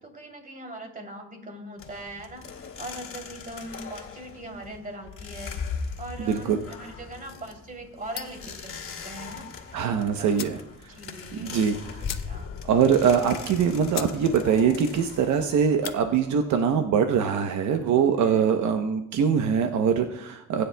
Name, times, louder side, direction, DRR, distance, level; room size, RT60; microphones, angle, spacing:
voice 1, 0.0-5.5 6.0-9.4 9.9-10.4 10.9-11.6 12.1-12.5 18.2-18.5, right 1 dB, 30° right, 2 dB, 3.0 m, -41 dB
sound 1, 1.8-16.8, left 5 dB, 45° left, 2.4 m, -40 dB
voice 2, 6.2-6.6 9.7-10.6 11.3-12.0 12.6-20.6, right 7 dB, 75° right, 6 dB, 0.9 m, -23 dB
sound 2, 8.1-8.5 9.8-9.9 10.3-10.7 11.0-11.1 11.4-11.5 12.0-12.6 13.0-13.1 13.5-13.6 13.9-14.2 14.5-14.9 15.6-16.0, left 10 dB, 65° left, 0.9 m, -37 dB
19.5 x 9.8 x 2.3 m, 0.85 s
cardioid pair, 80°, 29 cm